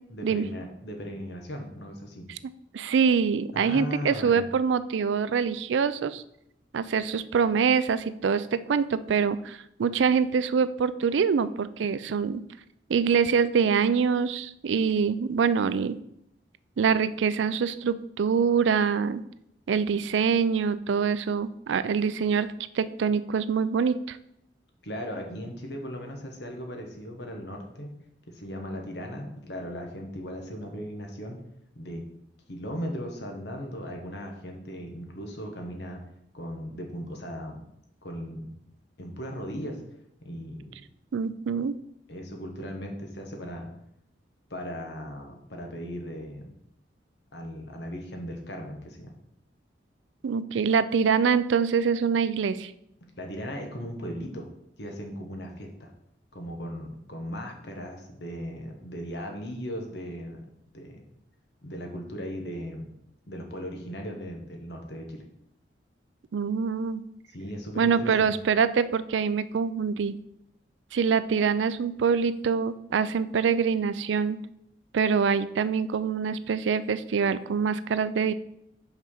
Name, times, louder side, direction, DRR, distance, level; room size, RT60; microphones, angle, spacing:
voice 1, 0.1-2.3 3.5-4.5 24.8-27.9 28.3-31.4 31.7-32.0 32.5-36.0 36.3-37.6 38.0-38.5 39.0-39.8 40.2-40.8 42.1-43.7 44.5-46.5 47.3-49.1 53.2-54.5 54.8-55.9 56.3-60.5 60.7-61.1 61.6-62.9 63.3-65.2 67.3-68.3, equal, 70° left, 2 dB, 1.3 m, -37 dB
voice 2, 2.7-6.2 6.7-12.4 12.9-16.0 16.8-19.2 19.7-24.2 41.1-41.8 50.2-52.7 66.3-67.0 67.8-70.2 70.9-74.4 74.9-78.3, right 6 dB, 85° right, 14 dB, 0.4 m, -25 dB
5.8 x 4.3 x 5.5 m, 0.76 s
head